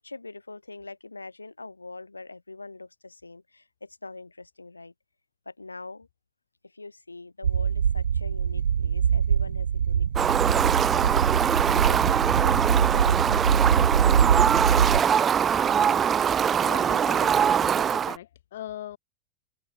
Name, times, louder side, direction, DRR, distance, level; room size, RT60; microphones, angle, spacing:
voice 1, 0.0-4.9 5.5-6.1 6.6-13.6 14.1-14.3, left 3 dB, 80° left, 6.0 m, -43 dB
Energy shield, 7.4-15.0, right 7 dB, 70° right, 2.0 m, -23 dB
Fowl, 10.2-18.2, right 8 dB, 25° right, 2.0 m, -23 dB
voice 2, 15.7-16.1 16.6-19.0, left 12 dB, 60° left, 2.2 m, -40 dB
figure-of-eight pair, 90°, 0 cm